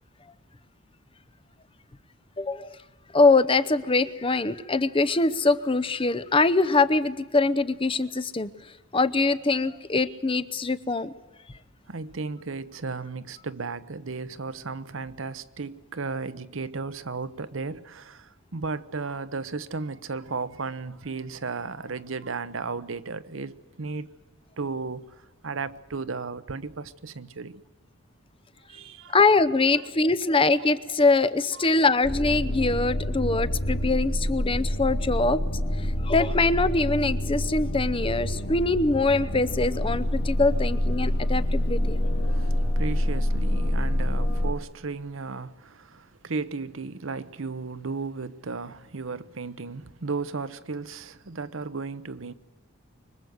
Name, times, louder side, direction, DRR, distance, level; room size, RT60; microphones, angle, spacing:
voice 1, 2.4-2.8 3.1-8.5 8.9-11.1 29.1-35.4 35.8-42.0, left 3 dB, 25° left, 0.7 m, -23 dB
voice 2, 11.9-24.2 24.6-27.6 28.7-29.3 30.2-30.4 31.0-31.1 31.5-31.8 42.2-52.3, right 4 dB, 70° right, 0.9 m, -35 dB
sound 1, 32.0-44.5, left 1 dB, 55° left, 2.6 m, -27 dB
25.0 x 22.0 x 8.0 m
head